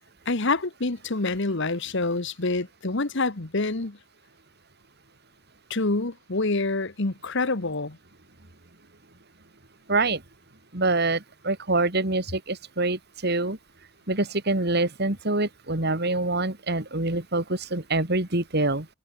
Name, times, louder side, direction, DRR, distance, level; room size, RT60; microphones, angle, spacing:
voice 1, 0.3-4.0 5.7-8.0, left 3 dB, 60° left, 1.4 m, -27 dB
voice 2, 9.9-10.2 10.7-13.6 14.1-18.9, right 2 dB, 50° right, 2.9 m, -25 dB
head